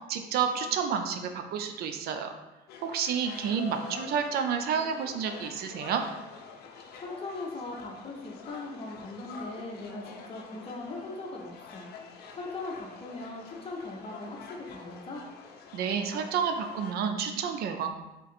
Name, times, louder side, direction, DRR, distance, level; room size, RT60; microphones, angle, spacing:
voice 1, 0.1-2.3 2.8-6.0 15.7-17.9, right 7 dB, 70° right, 6 dB, 0.4 m, -30 dB
sound 1, 2.7-16.9, left 5 dB, 70° left, 0.5 m, -47 dB
voice 2, 7.0-11.9 12.4-15.2, left 2 dB, 35° left, 0 dB, 0.9 m, -39 dB
3.8 x 2.4 x 4.2 m, 1.0 s
cardioid pair, 110°, 17 cm